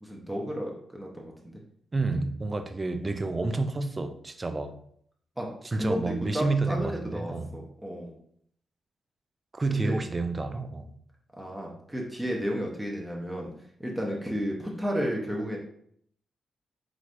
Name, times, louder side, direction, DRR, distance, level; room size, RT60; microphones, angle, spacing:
voice 1, 0.0-1.6 5.4-8.1 9.7-10.0 11.4-13.5 13.8-15.6, equal, 10° right, 0.8 m, -33 dB
voice 2, 1.9-4.7 5.6-7.6 9.5-10.9, right 3 dB, 25° right, 0.4 m, -29 dB
4.8 x 3.2 x 2.6 m
cardioid pair, 95°, 0 cm